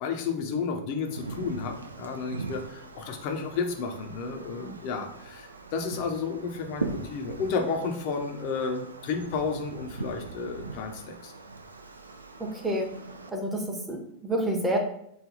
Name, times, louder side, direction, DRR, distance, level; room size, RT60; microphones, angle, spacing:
voice 1, 0.0-11.3, left 5 dB, 45° left, 4 dB, 0.6 m, -32 dB
Wind, 1.0-13.3, right 3 dB, 80° right, 0.3 m, -41 dB
voice 2, 12.4-12.9 13.3-14.8, right 1 dB, 10° right, 1 dB, 0.7 m, -29 dB
3.2 x 2.3 x 3.8 m, 0.72 s
figure-of-eight pair, 90°, 0 cm